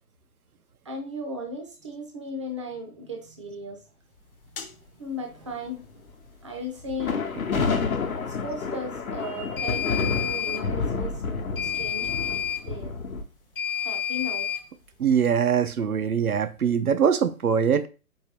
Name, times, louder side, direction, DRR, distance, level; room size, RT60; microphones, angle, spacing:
voice 1, 0.8-3.8 5.0-5.9 6.4-7.2 8.4-11.2 11.6-12.4 12.7-12.9 13.8-14.5, left 1 dB, 25° right, 0.4 m, -36 dB
sound 1, 4.6-4.7 9.6-10.7 11.6-12.7 13.6-14.7, left 8 dB, 40° left, 0.6 m, -29 dB
sound 2, 6.9-13.2, left 5 dB, 75° left, 0.8 m, -29 dB
voice 2, 15.0-17.9, right 7 dB, 90° right, 0.5 m, -22 dB
4.6 x 2.8 x 2.9 m
figure-of-eight pair, 130°, 43 cm